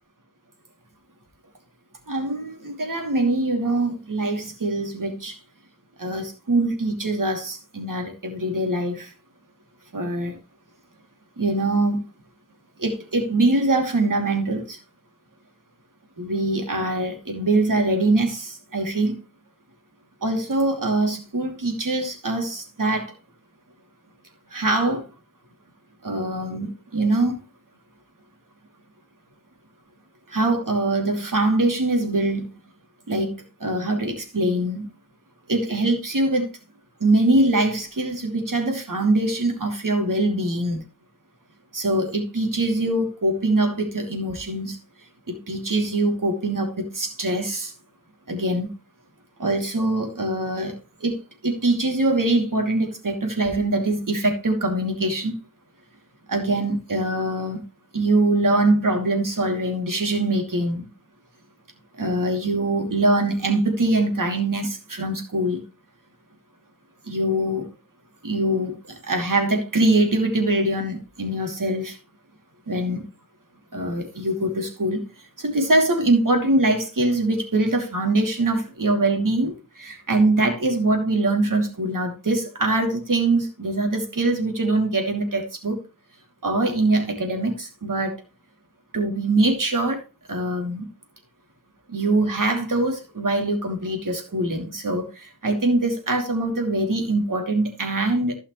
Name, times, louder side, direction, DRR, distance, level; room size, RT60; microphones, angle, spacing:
voice 1, 2.1-5.4 6.0-9.1 9.9-10.4 11.4-12.0 12.8-14.8 16.2-19.2 20.2-23.1 24.5-25.1 26.0-27.4 30.3-32.5 33.1-34.9 35.5-36.5 37.0-40.8 41.7-44.8 45.3-47.7 48.3-48.7 49.4-55.4 56.3-57.6 57.9-60.9 61.9-65.6 67.0-67.7 68.2-72.0 72.7-73.0 73.7-85.8 86.4-88.2 88.9-90.0 90.3-90.9 91.9-98.4, right 2 dB, 80° right, 2.8 m, -23 dB
15.5 x 5.7 x 3.1 m
wide cardioid pair, 65°, 32 cm